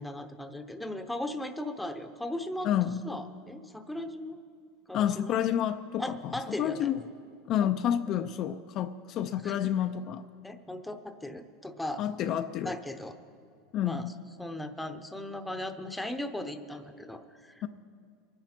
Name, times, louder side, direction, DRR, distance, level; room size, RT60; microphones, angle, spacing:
voice 1, 0.0-2.7 3.0-4.4 4.9-5.4 6.0-6.9 7.6-7.7 8.1-8.3 9.4-9.7 10.4-12.3 12.6-13.2 13.8-14.1 14.4-17.7, left 1 dB, 5° left, 7 dB, 0.8 m, -38 dB
voice 2, 2.6-3.0 4.9-6.3 6.6-7.0 7.5-10.2 12.0-12.7 13.7-14.1 17.6-17.7, left 10 dB, 45° left, 8 dB, 0.5 m, -29 dB
23.5 x 10.0 x 4.4 m, 2.2 s
supercardioid pair, 135°, 0 cm